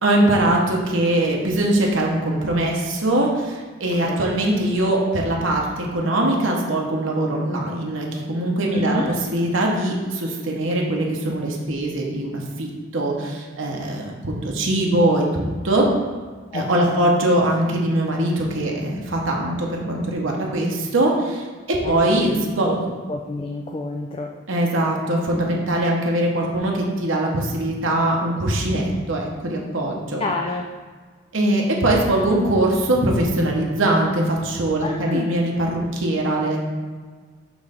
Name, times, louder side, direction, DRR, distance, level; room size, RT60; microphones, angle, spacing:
voice 1, 0.0-9.0 9.3-15.9 16.5-22.9 24.5-30.2 31.3-36.6, right 1 dB, 65° right, -1 dB, 1.0 m, -22 dB
voice 2, 8.7-9.1 16.5-17.1 21.8-22.8 23.1-24.3 30.2-30.7 34.8-35.4, left 2 dB, 25° left, 2 dB, 0.3 m, -29 dB
6.1 x 3.2 x 5.1 m, 1.5 s
head